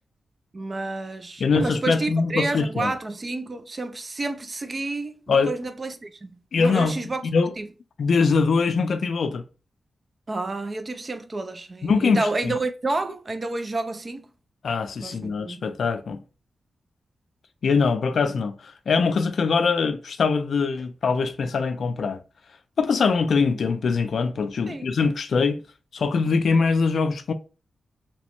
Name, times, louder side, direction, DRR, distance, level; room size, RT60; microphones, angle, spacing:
voice 1, 0.5-7.2 7.6-7.7 10.3-14.3 15.0-15.7 24.7-24.9, right 2 dB, 35° right, 0.4 m, -30 dB
voice 2, 1.4-2.9 5.3-5.5 6.5-6.9 7.2-7.5 8.0-9.4 11.8-12.5 14.6-16.2 17.6-22.2 22.8-25.6 25.9-27.3, left 5 dB, 70° left, 0.4 m, -22 dB
2.9 x 2.1 x 2.9 m
cardioid pair, 80°, 0 cm